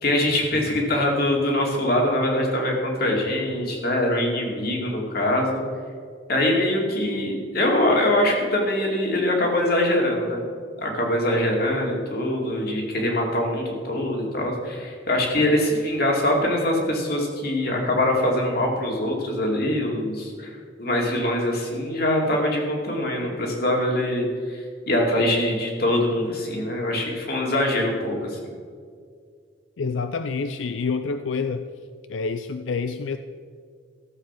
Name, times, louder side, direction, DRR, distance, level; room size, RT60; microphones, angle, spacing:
voice 1, 0.0-5.6 6.3-10.4 10.8-20.5 20.8-24.6 24.9-28.5, left 1 dB, 55° left, 0 dB, 2.6 m, -23 dB
voice 2, 29.8-31.7 32.1-33.2, left 4 dB, 90° left, 9 dB, 0.4 m, -27 dB
14.5 x 7.6 x 5.9 m, 2.1 s
head